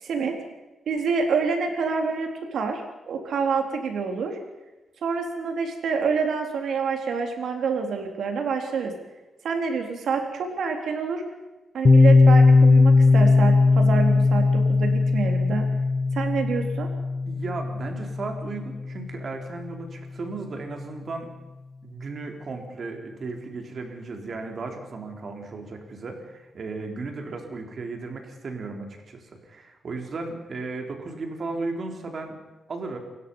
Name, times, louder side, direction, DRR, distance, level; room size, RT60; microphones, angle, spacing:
voice 1, 0.0-0.4 0.9-2.8 3.1-4.4 5.0-8.9 9.4-11.2 11.7-15.7 16.1-16.9, right 5 dB, 85° right, 4 dB, 3.9 m, -27 dB
Piano, 11.8-19.3, left 3 dB, 35° left, 0.9 m, -19 dB
voice 2, 17.3-21.3 21.8-32.3 32.7-33.0, right 3 dB, 55° right, 3 dB, 4.2 m, -35 dB
29.5 x 16.5 x 5.7 m, 1.1 s
wide cardioid pair, 115°, 0 cm